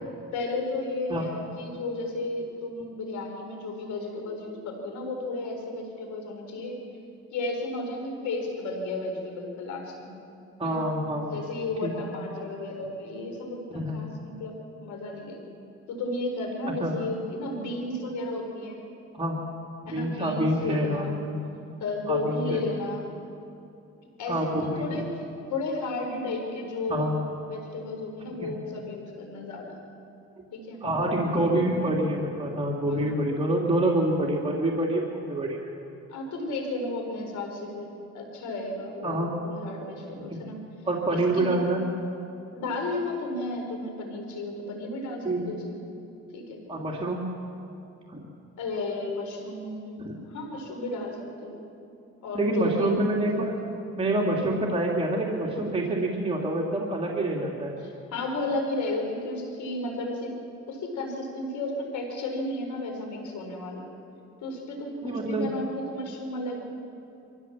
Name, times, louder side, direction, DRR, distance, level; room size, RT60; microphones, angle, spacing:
voice 1, 0.3-6.8 7.3-10.2 10.6-10.8 11.3-15.5 15.9-18.9 19.9-21.2 21.8-23.1 24.2-25.0 25.5-27.1 27.5-29.8 30.5-30.8 32.9-33.2 36.1-40.6 41.1-41.6 42.5-45.8 46.3-46.6 48.6-51.6 52.2-52.9 57.8-60.4 60.7-63.9 64.4-66.6, left 2 dB, 75° left, 2 dB, 4.5 m, -33 dB
voice 2, 10.6-11.4 11.8-11.9 13.7-14.0 16.8-16.9 19.1-19.4 19.9-21.3 22.1-22.6 24.3-24.9 26.9-27.1 28.4-28.5 30.8-35.7 39.0-39.3 40.1-40.4 40.9-41.9 45.2-45.5 46.7-47.2 48.1-48.2 50.0-50.2 52.3-53.5 54.0-57.7 65.0-65.5, right 1 dB, 20° right, -3 dB, 2.9 m, -27 dB
24.0 x 15.5 x 7.4 m, 2.7 s
cardioid pair, 95°, 30 cm